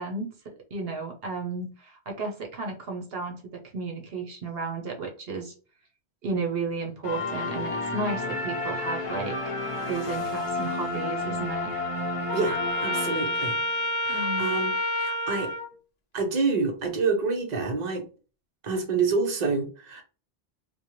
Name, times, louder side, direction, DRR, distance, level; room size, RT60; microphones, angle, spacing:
voice 1, 0.0-5.5 6.2-9.6 9.9-11.7 14.1-14.6, right 3 dB, 70° right, 2 dB, 1.0 m, -33 dB
sound 1, 7.0-13.6, left 2 dB, 35° left, 0.6 m, -31 dB
Trumpet, 12.3-15.7, left 1 dB, 80° left, 1.0 m, -28 dB
voice 2, 12.3-13.6 14.0-15.5 16.1-18.1 18.6-20.0, right 4 dB, 45° right, 3 dB, 0.9 m, -28 dB
4.3 x 2.2 x 3.0 m, 0.35 s
omnidirectional pair, 1.0 m